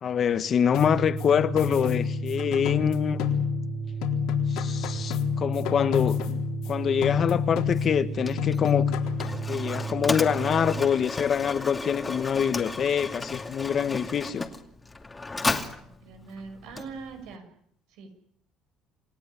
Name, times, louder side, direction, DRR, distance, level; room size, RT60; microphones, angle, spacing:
voice 1, 0.0-3.2 4.5-6.4 6.7-8.9 9.5-14.5, left 7 dB, 45° left, 1.6 m, -25 dB
sound 1, 0.7-3.8 4.0-6.7 7.0-8.1 8.4-9.5, left 10 dB, 85° left, 4.0 m, -29 dB
Organ, 0.7-11.0, right 6 dB, 45° right, 1.1 m, -34 dB
Mechanisms, 7.7-17.4, left 3 dB, 15° left, 2.5 m, -34 dB
voice 2, 15.8-17.5 17.9-18.1, right 4 dB, 85° right, 6.7 m, -42 dB
28.5 x 17.0 x 9.9 m
cardioid pair, 120°, 0 cm